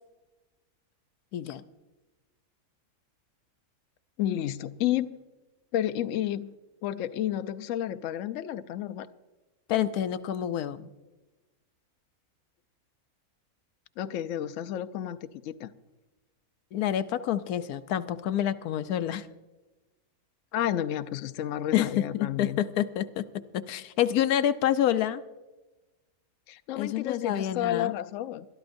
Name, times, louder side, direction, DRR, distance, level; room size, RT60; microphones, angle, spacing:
voice 1, 4.2-5.1 5.7-6.5 6.8-9.1 14.0-15.7 20.5-22.6 26.5-28.5, left 11 dB, 70° left, 9 dB, 0.9 m, -31 dB
voice 2, 9.7-10.9 16.7-19.3 21.7-23.3 23.5-25.2 26.7-27.9, left 11 dB, 85° left, 12 dB, 1.1 m, -28 dB
22.0 x 12.5 x 2.6 m, 1.1 s
omnidirectional pair, 1.5 m